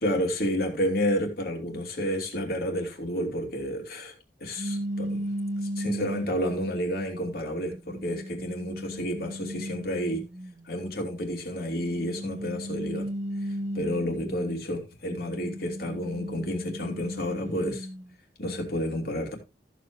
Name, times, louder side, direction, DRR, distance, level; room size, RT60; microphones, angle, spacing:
voice 1, 0.0-4.1 4.4-5.2 5.6-10.2 10.6-13.1 13.7-17.9 18.4-19.4, equal, 60° left, 2.9 m, -30 dB
sound 1, 4.6-6.8 7.4-10.5 11.6-14.6 15.1-18.0, equal, 45° right, 1.5 m, -35 dB
14.0 x 7.6 x 3.1 m
head